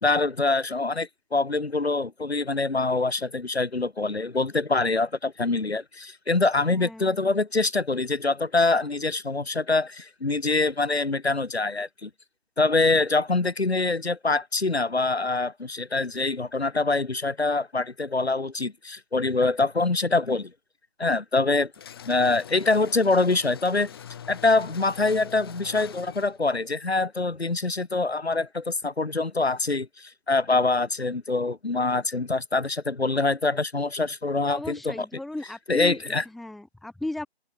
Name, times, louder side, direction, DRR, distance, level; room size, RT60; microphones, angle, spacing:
voice 1, 0.0-12.1 12.6-20.5 21.0-21.7 22.1-23.9 24.3-35.0 35.7-36.2, left 3 dB, 75° left, 1.5 m, -25 dB
voice 2, 6.7-7.2 34.5-37.3, left 1 dB, ahead, 1.3 m, -36 dB
sound 1, 21.7-26.5, left 9 dB, 20° left, 4.0 m, -43 dB
open air
figure-of-eight pair, 155°, 32 cm